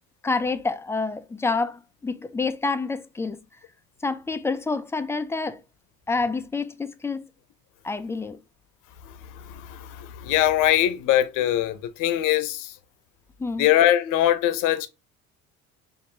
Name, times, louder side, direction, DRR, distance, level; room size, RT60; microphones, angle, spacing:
voice 1, 0.2-3.4 4.0-5.6 6.1-7.3 7.8-8.4 13.4-13.7, left 4 dB, 10° left, 0.3 m, -28 dB
voice 2, 9.4-12.7 13.6-14.9, left 12 dB, 70° left, 0.7 m, -22 dB
4.3 x 2.6 x 2.7 m
cardioid pair, 110°, 32 cm